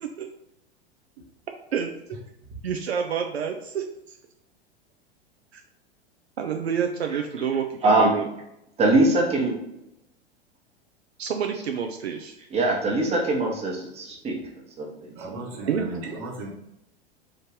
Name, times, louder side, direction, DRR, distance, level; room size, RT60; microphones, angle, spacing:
voice 1, 1.7-2.2 2.6-4.2 5.5-5.6 6.4-8.2 11.2-12.4 15.7-15.8, right 7 dB, 80° right, 4 dB, 0.5 m, -28 dB
voice 2, 7.8-8.2 8.8-9.6 11.5-11.6 12.5-14.4 14.8-15.4, right 2 dB, 20° right, -1 dB, 1.0 m, -23 dB
voice 3, 15.2-16.5, right 2 dB, 45° right, -1 dB, 1.1 m, -36 dB
3.7 x 2.5 x 4.4 m, 0.83 s
figure-of-eight pair, 90°, 32 cm